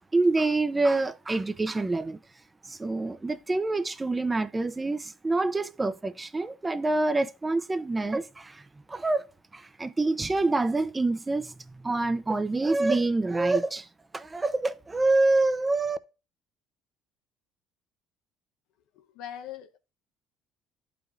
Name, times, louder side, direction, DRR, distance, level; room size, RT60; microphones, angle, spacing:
voice 1, 0.1-2.2 2.6-8.6 8.9-9.2 9.5-13.9 14.1-16.0, right 2 dB, 20° right, 0.6 m, -26 dB
voice 2, 18.9-19.8, left 10 dB, 75° left, 0.8 m, -41 dB
11.5 x 5.1 x 2.5 m
supercardioid pair, 80°, 0 cm